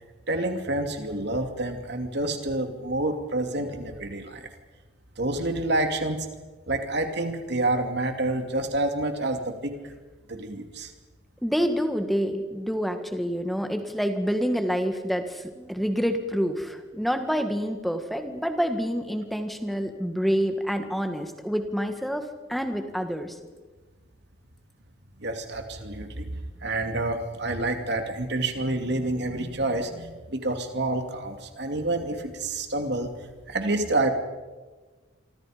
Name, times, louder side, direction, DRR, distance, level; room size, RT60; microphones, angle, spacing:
voice 1, 0.3-4.5 5.2-6.3 6.7-9.8 10.3-10.9 25.2-33.1 33.5-34.1, right 2 dB, 55° right, 5 dB, 2.7 m, -28 dB
voice 2, 11.4-22.2 22.5-23.4, equal, ahead, 6 dB, 1.8 m, -27 dB
27.5 x 25.0 x 5.2 m, 1.3 s
head